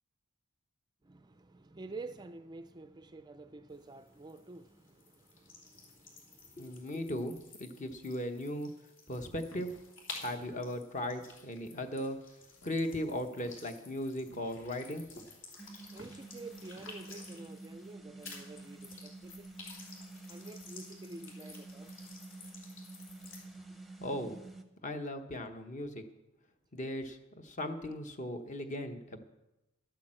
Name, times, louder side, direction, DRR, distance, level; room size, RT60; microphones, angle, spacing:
voice 1, 1.0-7.0 7.8-7.9 9.1-9.3 10.1-10.7 11.6-11.9 15.7-19.5 20.3-21.9, right 3 dB, 20° right, 0.4 m, -50 dB
sound 1, 3.7-17.9 18.2-23.4, left 4 dB, 60° left, 3.2 m, -53 dB
voice 2, 6.6-8.7 9.1-9.7 10.1-12.2 12.6-15.1 24.0-24.4 24.8-26.1 26.7-29.2, left 1 dB, 35° left, 1.1 m, -37 dB
sound 2, 9.2-17.1, equal, 85° left, 1.9 m, -60 dB
sound 3, 15.6-24.6, right 2 dB, ahead, 0.8 m, -49 dB
12.0 x 8.8 x 7.6 m
head